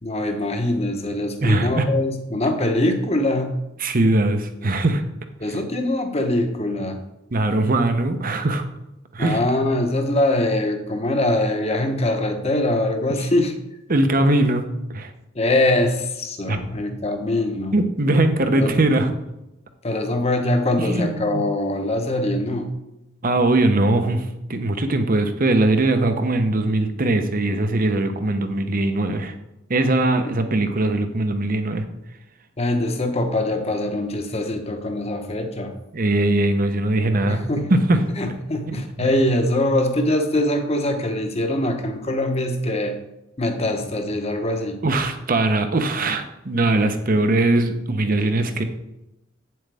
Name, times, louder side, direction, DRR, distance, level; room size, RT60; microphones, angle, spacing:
voice 1, 0.0-3.5 5.4-7.0 9.2-13.5 15.3-17.8 18.5-18.8 19.8-22.7 32.6-35.7 37.2-37.7 38.2-43.0 43.4-44.8, left 1 dB, 35° left, 6 dB, 1.0 m, -23 dB
voice 2, 1.4-1.9 3.8-5.0 7.3-8.6 9.1-9.4 13.9-15.1 16.5-16.6 17.7-19.1 20.8-21.4 23.2-29.3 29.7-31.8 35.9-38.0 38.7-38.8 44.8-48.6, right 2 dB, 45° right, 8 dB, 0.9 m, -20 dB
8.7 x 7.7 x 3.5 m, 0.91 s
head